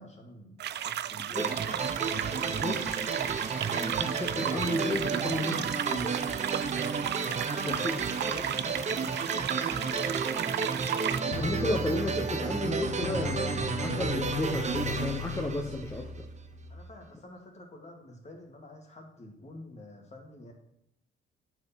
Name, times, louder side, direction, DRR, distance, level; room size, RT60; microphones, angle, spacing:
voice 1, 0.0-2.9 7.2-10.5 16.7-20.5, left 1 dB, 35° left, 2 dB, 2.2 m, -49 dB
sound 1, 0.6-11.2, right 11 dB, 60° right, 0.4 m, -34 dB
sound 2, 1.4-16.2, right 5 dB, 35° right, 0.9 m, -32 dB
voice 2, 2.6-3.0 3.7-6.2 7.7-8.0 11.3-16.2, left 1 dB, 15° left, 0 dB, 1.1 m, -33 dB
sound 3, 11.3-16.8, left 3 dB, 85° left, 1.4 m, -37 dB
9.4 x 4.8 x 5.7 m, 0.79 s
cardioid pair, 90°, 20 cm